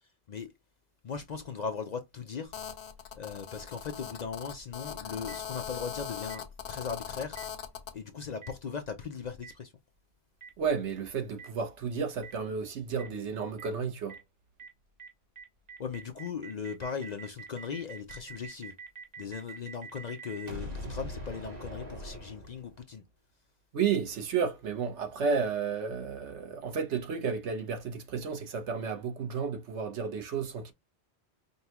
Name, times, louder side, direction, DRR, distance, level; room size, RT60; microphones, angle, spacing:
voice 1, 1.0-2.5 3.1-7.4 7.9-9.7 15.8-18.7 19.2-23.0, left 6 dB, 55° left, 0.5 m, -38 dB
Telephone, 2.5-7.9, left 8 dB, 75° left, 1.0 m, -40 dB
Boom, 5.3-5.4 6.3-6.4 7.4-7.5 8.4-8.5 9.4-9.5 10.4-10.5 11.4-11.5 12.2-12.3 13.0-13.1 13.6-13.7 14.1-14.2 14.6-14.7 15.0-15.1 15.4-22.9, right 2 dB, 40° right, 1.1 m, -43 dB
voice 2, 10.6-14.2 23.7-30.7, right 6 dB, 85° right, 1.2 m, -32 dB
5.3 x 2.3 x 2.9 m
omnidirectional pair, 1.1 m